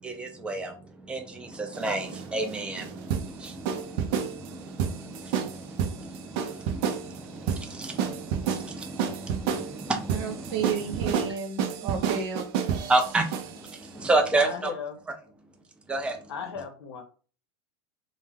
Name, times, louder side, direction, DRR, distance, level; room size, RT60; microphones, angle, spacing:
voice 1, 0.0-11.3 11.8-11.9 12.9-14.7 15.9-16.2, right 2 dB, 10° right, 0.5 m, -31 dB
sound 1, 1.7-13.8, right 7 dB, 60° right, 0.5 m, -30 dB
voice 2, 10.1-12.4, right 6 dB, 75° right, 0.9 m, -32 dB
voice 3, 14.4-15.0 16.3-17.0, left 6 dB, 85° left, 0.7 m, -36 dB
3.1 x 2.1 x 2.3 m
supercardioid pair, 125°, 13 cm